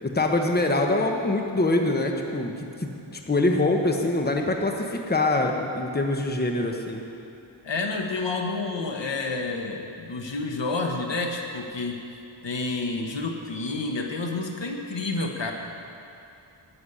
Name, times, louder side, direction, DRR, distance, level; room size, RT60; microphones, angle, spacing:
voice 1, 0.0-2.9 3.3-7.0, left 2 dB, 20° left, 2 dB, 1.1 m, -24 dB
voice 2, 7.6-12.0 12.4-15.5, left 3 dB, 60° left, 2 dB, 1.3 m, -29 dB
11.5 x 7.2 x 8.4 m, 2.7 s
wide cardioid pair, 70°, 49 cm